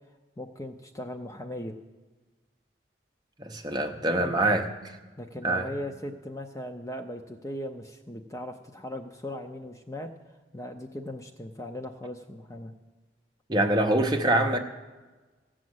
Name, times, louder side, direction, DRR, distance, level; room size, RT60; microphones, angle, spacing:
voice 1, 0.4-1.8 4.2-4.3 5.2-10.1 10.5-12.7, left 1 dB, 15° left, 5 dB, 0.5 m, -38 dB
voice 2, 3.4-5.0 5.4-5.7 13.5-14.6, right 1 dB, 20° right, 3 dB, 0.8 m, -25 dB
15.0 x 6.2 x 7.8 m, 1.3 s
head